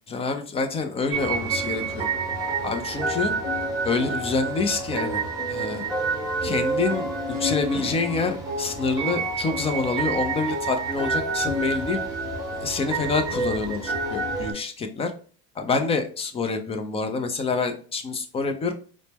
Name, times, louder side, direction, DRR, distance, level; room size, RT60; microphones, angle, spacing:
voice 1, 0.1-2.1 2.6-3.3 3.8-5.8 6.4-7.1 7.4-12.0 12.6-15.1 15.6-18.7, left 4 dB, 20° left, 7 dB, 0.4 m, -27 dB
sound 1, 1.1-14.5, right 3 dB, 10° right, 1.2 m, -28 dB
4.1 x 2.1 x 3.4 m, 0.41 s
supercardioid pair, 130°, 30 cm